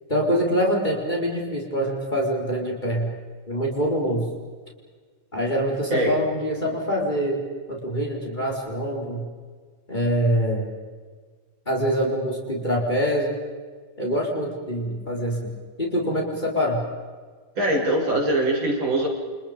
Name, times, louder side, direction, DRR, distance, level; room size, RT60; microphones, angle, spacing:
voice 1, 0.1-3.1 3.5-4.3 5.3-7.4 7.7-9.3 9.9-10.7 11.7-13.4 14.0-15.5 15.8-16.8, equal, 20° left, -1 dB, 4.7 m, -24 dB
voice 2, 17.6-19.1, right 1 dB, 75° right, -1 dB, 7.4 m, -22 dB
29.5 x 29.5 x 5.3 m, 1.5 s
omnidirectional pair, 2.2 m